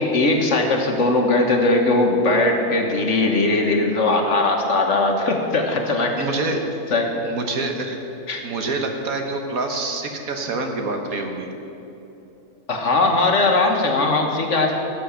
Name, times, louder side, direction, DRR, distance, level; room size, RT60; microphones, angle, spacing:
voice 1, 0.0-6.1 6.9-7.1 8.3-8.4 12.7-14.8, left 2 dB, 55° left, 2 dB, 1.6 m, -19 dB
voice 2, 6.2-6.6 7.2-8.0 8.4-11.5, right 3 dB, 70° right, 3 dB, 1.7 m, -26 dB
16.5 x 7.0 x 7.0 m, 2.9 s
omnidirectional pair, 1.6 m